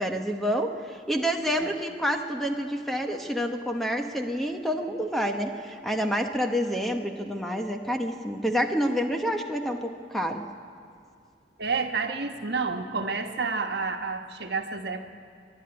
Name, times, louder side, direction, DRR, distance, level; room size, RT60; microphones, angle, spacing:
voice 1, 0.0-10.4, equal, ahead, 3 dB, 1.0 m, -28 dB
voice 2, 11.6-15.1, right 4 dB, 65° right, 4 dB, 1.3 m, -30 dB
24.5 x 11.0 x 9.7 m, 2.4 s
head